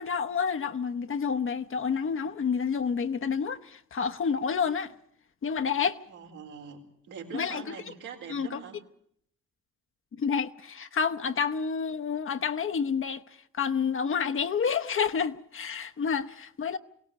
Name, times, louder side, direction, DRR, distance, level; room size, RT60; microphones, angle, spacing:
voice 1, 0.0-4.9 5.4-6.0 7.3-7.7 8.3-8.6 10.2-13.2 13.5-16.8, left 6 dB, 45° left, 0.9 m, -29 dB
voice 2, 6.1-8.8 15.8-15.9, right 7 dB, 85° right, 4.1 m, -43 dB
22.5 x 17.5 x 8.2 m
cardioid pair, 90°, 30 cm